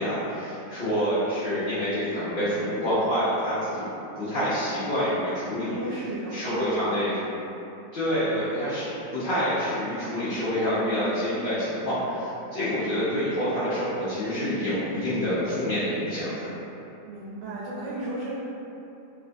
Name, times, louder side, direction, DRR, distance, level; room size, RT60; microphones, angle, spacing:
voice 1, 0.0-3.9 4.2-5.8 6.3-7.2 7.9-16.5, equal, 80° left, -15 dB, 0.4 m, -27 dB
voice 2, 5.7-6.9 17.0-18.4, right 2 dB, 85° right, -6 dB, 1.2 m, -34 dB
2.9 x 2.2 x 2.5 m, 2.9 s
omnidirectional pair, 1.9 m